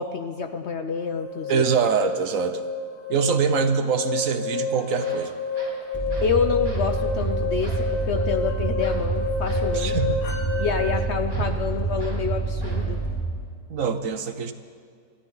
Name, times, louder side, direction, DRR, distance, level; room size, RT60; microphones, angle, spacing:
voice 1, 0.0-1.6 6.2-9.9 10.6-13.0, left 6 dB, 60° left, 7 dB, 0.8 m, -27 dB
sound 1, 1.1-11.0, left 4 dB, 35° left, 1.3 m, -30 dB
voice 2, 1.5-2.6 3.1-5.3 9.7-10.3 11.4-11.5 13.7-14.5, right 6 dB, 60° right, 9 dB, 1.1 m, -24 dB
sound 2, 4.4-4.5 4.9-6.4 6.6-6.9 7.2-7.3 7.6-8.4 8.8-9.1 9.4-9.7 11.3-11.6 12.0-12.3 12.6-12.9, right 1 dB, 40° right, 3.3 m, -43 dB
sound 3, 5.9-13.2, right 4 dB, 15° right, 4.4 m, -27 dB
26.0 x 13.5 x 3.9 m, 2.1 s
omnidirectional pair, 1.7 m